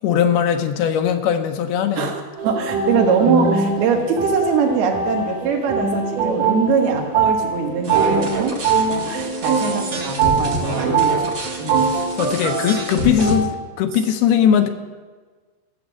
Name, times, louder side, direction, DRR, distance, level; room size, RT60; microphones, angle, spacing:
voice 1, 0.0-2.1 11.9-14.7, left 8 dB, 80° left, 7 dB, 2.7 m, -19 dB
voice 2, 2.0-11.9, right 5 dB, 75° right, 2 dB, 3.2 m, -22 dB
sound 1, 2.4-13.5, right 4 dB, 60° right, 1.9 m, -22 dB
sound 2, 7.8-13.3, right 2 dB, 40° right, 1.9 m, -28 dB
14.5 x 7.5 x 6.2 m, 1.4 s
omnidirectional pair, 4.6 m